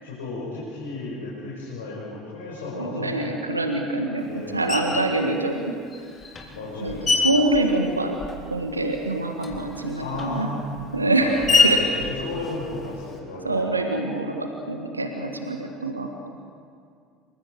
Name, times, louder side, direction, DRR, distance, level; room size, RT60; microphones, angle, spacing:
voice 1, 0.0-3.3 4.2-4.8 6.5-7.1 10.0-10.7 11.2-13.7, left 2 dB, 70° left, -7 dB, 5.8 m, -34 dB
voice 2, 2.8-5.7 6.8-8.2 8.5-10.5 10.9-11.8 13.4-16.1, right 2 dB, 85° right, 4 dB, 1.6 m, -25 dB
Screech, 4.7-5.2 5.9-8.6 8.9-13.2, left 4 dB, 30° left, 3.7 m, -26 dB
27.5 x 24.5 x 4.8 m, 2.3 s
figure-of-eight pair, 65°, 0 cm